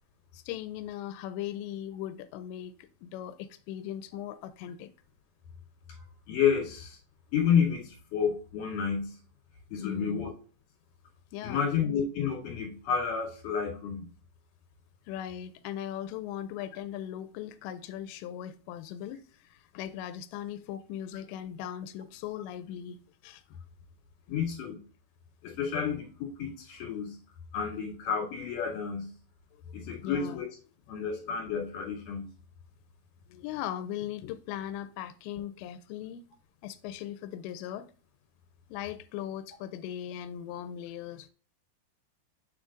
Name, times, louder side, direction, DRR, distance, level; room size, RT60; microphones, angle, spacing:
voice 1, 0.3-4.9 9.8-10.2 11.3-11.7 15.1-23.6 29.8-30.4 33.3-36.3 36.6-37.9 38.7-41.3, left 11 dB, 90° left, 2.8 m, -39 dB
voice 2, 6.0-7.0 7.3-9.2 9.7-10.3 11.4-14.1 24.3-24.8 25.4-27.2 27.5-29.1 29.7-30.5 30.9-32.3, left 7 dB, 55° left, 3.6 m, -30 dB
7.1 x 6.2 x 2.4 m
omnidirectional pair, 5.0 m